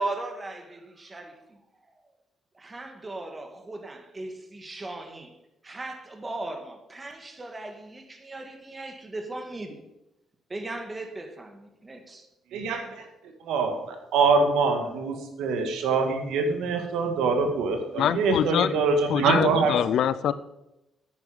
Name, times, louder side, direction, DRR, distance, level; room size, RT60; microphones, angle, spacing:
voice 1, 0.0-1.6 2.5-5.4 5.6-9.8 10.5-12.3, right 2 dB, 25° right, 1.9 m, -37 dB
voice 2, 12.5-13.1 13.4-19.9, right 4 dB, 85° right, 1.9 m, -24 dB
voice 3, 18.0-18.7 19.1-20.3, left 9 dB, 75° left, 0.5 m, -24 dB
9.7 x 9.0 x 5.2 m
cardioid pair, 90°, 0 cm